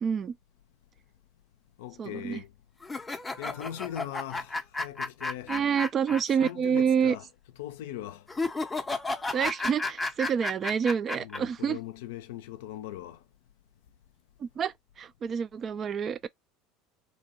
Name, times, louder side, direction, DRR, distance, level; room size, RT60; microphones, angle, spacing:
voice 1, 0.0-0.4 2.0-2.4 5.5-7.2 9.3-11.8 14.4-16.3, right 7 dB, 40° right, 0.3 m, -28 dB
voice 2, 1.8-2.5 3.4-5.7 6.3-7.3 7.6-8.2 11.2-13.2, left 12 dB, 75° left, 0.4 m, -40 dB
sound 1, 2.8-6.5 6.8-6.9 8.3-11.4, left 3 dB, 15° left, 0.5 m, -32 dB
2.7 x 2.1 x 2.8 m
hypercardioid pair, 85°, 0 cm